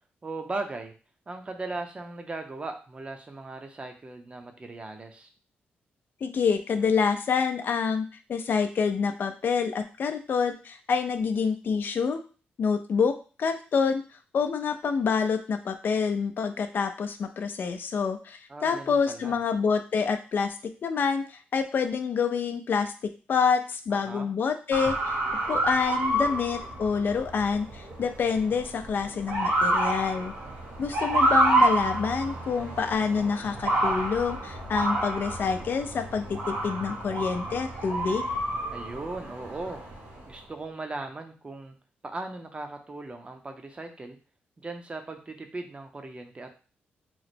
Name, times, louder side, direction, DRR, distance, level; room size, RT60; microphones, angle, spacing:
voice 1, 0.2-0.9 1.3-5.3 18.5-19.4 24.0-24.3 38.7-39.8 40.3-41.7 42.1-44.2 44.6-46.5, right 2 dB, 30° right, 5 dB, 0.6 m, -38 dB
voice 2, 6.2-12.2 12.6-14.0 14.3-20.5 20.8-22.9 23.3-25.2 25.5-30.3 30.8-38.2, left 5 dB, 60° left, 7 dB, 0.5 m, -27 dB
Motor vehicle (road) / Siren, 24.7-40.3, right 1 dB, 85° right, 0.9 m, -28 dB
3.1 x 2.0 x 4.2 m, 0.36 s
cardioid pair, 90°, 4 cm